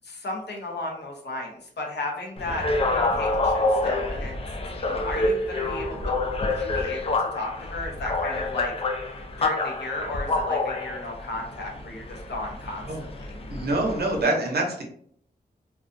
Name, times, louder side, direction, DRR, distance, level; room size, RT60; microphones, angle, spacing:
voice 1, 0.0-4.4 4.8-8.7 9.1-13.3, left 2 dB, 85° left, 0 dB, 0.7 m, -35 dB
sound 1, 2.4-14.2, left 2 dB, 35° left, 0.4 m, -27 dB
voice 2, 13.5-14.8, right 2 dB, 70° right, 1 dB, 0.7 m, -25 dB
2.3 x 2.3 x 2.5 m, 0.63 s
wide cardioid pair, 115°, 17 cm